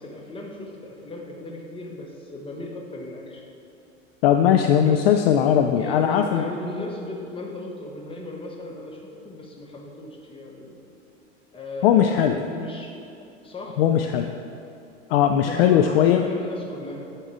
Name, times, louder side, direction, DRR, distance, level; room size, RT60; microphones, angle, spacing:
voice 1, 0.0-3.5 4.8-5.2 5.8-10.8 11.5-12.1 12.4-13.0 13.4-13.8 15.4-17.1, left 2 dB, 15° left, 0 dB, 1.2 m, -36 dB
voice 2, 4.2-6.5 11.8-12.4 13.8-14.3 15.1-16.2, left 9 dB, 50° left, 6 dB, 0.4 m, -19 dB
9.6 x 4.5 x 4.8 m, 2.7 s
figure-of-eight pair, 85°, 38 cm